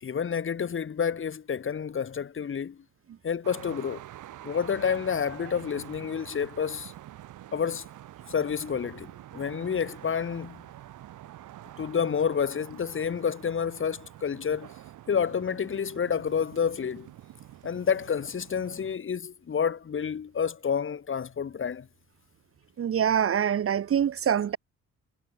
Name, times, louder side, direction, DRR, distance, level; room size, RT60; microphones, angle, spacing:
voice 1, 0.0-2.8 3.2-4.0 4.4-6.9 7.5-7.9 8.3-10.6 11.8-14.7 15.1-17.1 17.6-21.9, left 7 dB, 45° left, 2.1 m, -29 dB
sound 1, 3.4-19.0, right 13 dB, 80° right, 6.8 m, -47 dB
voice 2, 22.8-24.6, right 9 dB, 50° right, 1.1 m, -25 dB
cardioid pair, 90°, 30 cm